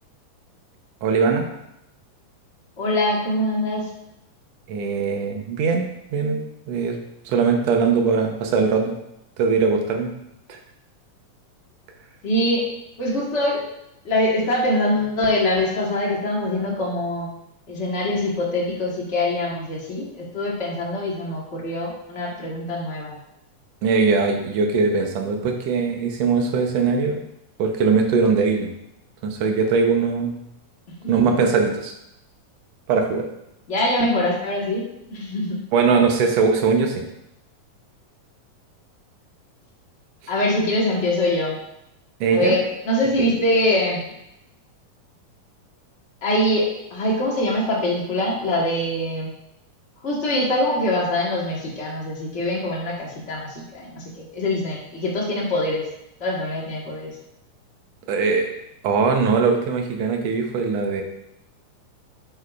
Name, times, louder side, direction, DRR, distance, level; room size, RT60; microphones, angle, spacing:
voice 1, 1.0-1.5 4.7-6.4 6.7-7.0 7.2-9.0 9.4-10.1 10.5-10.6 23.8-27.2 27.6-28.7 29.2-30.4 31.1-31.9 32.9-33.2 35.7-37.0 42.2-42.6 58.1-58.5 58.8-61.0, right 5 dB, 70° right, 3 dB, 1.7 m, -20 dB
voice 2, 2.8-3.9 12.2-12.7 13.0-13.6 14.0-17.3 17.7-23.1 31.2-31.3 33.7-34.8 35.1-35.6 40.3-41.6 42.3-44.1 46.2-49.3 50.0-55.8 56.2-57.1, left 1 dB, 55° left, -4 dB, 0.7 m, -23 dB
8.7 x 6.8 x 2.4 m, 0.82 s
omnidirectional pair, 3.8 m